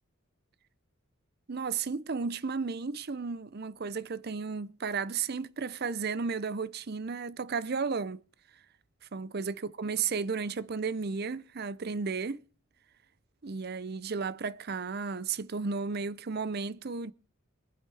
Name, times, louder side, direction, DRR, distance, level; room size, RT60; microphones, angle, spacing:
voice 1, 1.5-8.2 9.1-12.4 13.4-17.1, right 5 dB, 50° right, 0.6 m, -33 dB
23.0 x 8.1 x 4.8 m
head